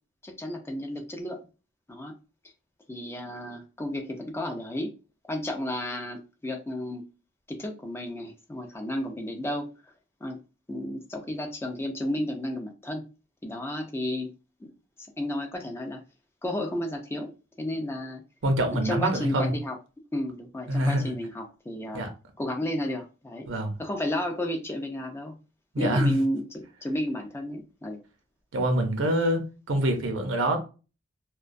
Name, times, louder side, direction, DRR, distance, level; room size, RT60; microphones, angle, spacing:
voice 1, 0.2-1.4 1.9-2.1 2.9-4.9 5.3-7.0 7.5-9.7 10.2-10.4 10.7-13.1 13.4-14.3 14.6-14.7 15.2-16.0 16.4-17.3 17.6-18.2 18.7-19.8 20.1-22.0 22.4-23.5 23.8-25.3 25.8-28.0, left 1 dB, 15° left, 0.3 m, -32 dB
voice 2, 18.4-19.5 20.7-21.1 21.9-22.1 23.5-23.7 25.7-26.2 28.5-29.4 29.7-30.6, right 1 dB, 70° right, 0.6 m, -25 dB
2.2 x 2.2 x 2.5 m
head